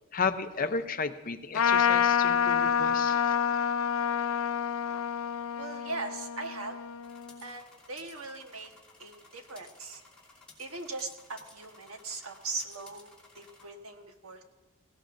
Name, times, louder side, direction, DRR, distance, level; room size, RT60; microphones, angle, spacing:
voice 1, 0.1-3.4, left 5 dB, 40° left, 9 dB, 0.6 m, -33 dB
Trumpet, 1.5-7.4, left 8 dB, 80° left, 0.5 m, -28 dB
voice 2, 5.6-6.8 7.4-8.7 9.0-10.0 10.6-14.4, right 3 dB, 80° right, 5 dB, 1.3 m, -40 dB
sound 1, 7.0-13.7, left 3 dB, 5° left, 3.0 m, -56 dB
17.5 x 17.0 x 2.6 m, 1.2 s
head